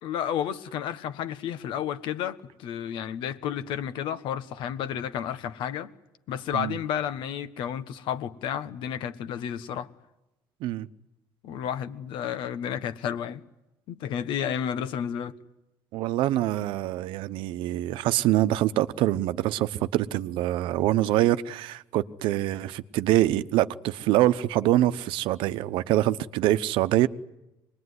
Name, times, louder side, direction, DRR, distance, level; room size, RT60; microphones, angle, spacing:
voice 1, 0.0-5.9 6.3-9.9 11.4-13.4 13.9-15.4, left 9 dB, 75° left, 1.4 m, -31 dB
voice 2, 15.9-27.1, right 14 dB, 80° right, 0.9 m, -25 dB
25.5 x 21.0 x 9.7 m
cardioid pair, 140°, 8 cm